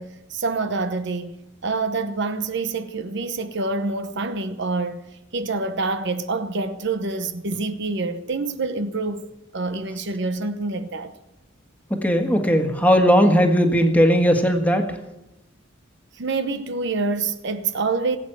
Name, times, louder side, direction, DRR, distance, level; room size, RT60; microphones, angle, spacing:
voice 1, 0.0-5.0 5.3-9.3 9.5-11.1 16.1-18.2, right 3 dB, 60° right, 0.9 m, -26 dB
voice 2, 12.0-14.8, equal, 10° left, 1.7 m, -17 dB
20.0 x 8.5 x 7.8 m
head